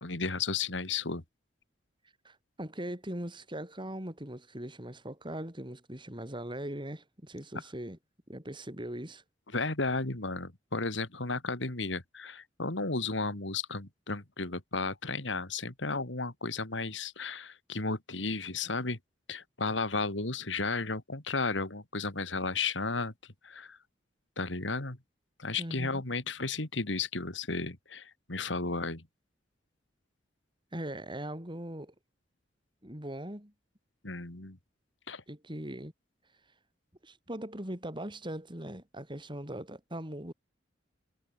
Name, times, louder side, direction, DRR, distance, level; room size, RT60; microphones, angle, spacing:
voice 1, 0.0-1.2 9.5-19.0 19.3-23.1 23.4-23.8 24.4-25.0 25.4-29.0 34.0-34.6 35.1-35.2, left 3 dB, 85° left, 2.9 m, -33 dB
voice 2, 2.2-8.0 8.3-9.2 25.6-26.0 30.7-31.9 32.8-33.5 35.3-35.9 37.0-40.3, right 1 dB, 25° right, 7.2 m, -40 dB
head